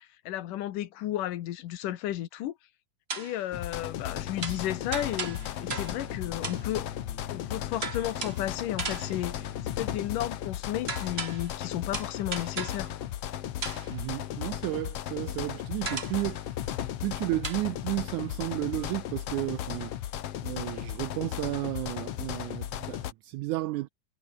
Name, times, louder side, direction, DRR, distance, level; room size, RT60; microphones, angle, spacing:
voice 1, 0.0-2.6 3.2-6.9 7.3-13.1, left 13 dB, 90° left, 2.9 m, -33 dB
sound 1, 3.1-3.5 4.4-6.1 6.4-6.7 7.8-8.5 8.8-9.3 10.9-11.6 11.9-12.9 13.6-14.0 15.8-16.3 17.4-17.6, right 3 dB, 20° right, 2.0 m, -37 dB
sound 2, 3.5-23.1, left 11 dB, 60° left, 1.9 m, -36 dB
sound 3, 4.1-10.2, left 6 dB, 40° left, 2.3 m, -45 dB
voice 2, 13.9-16.6 17.0-19.9 20.4-23.9, right 18 dB, 80° right, 2.0 m, -33 dB
omnidirectional pair, 3.7 m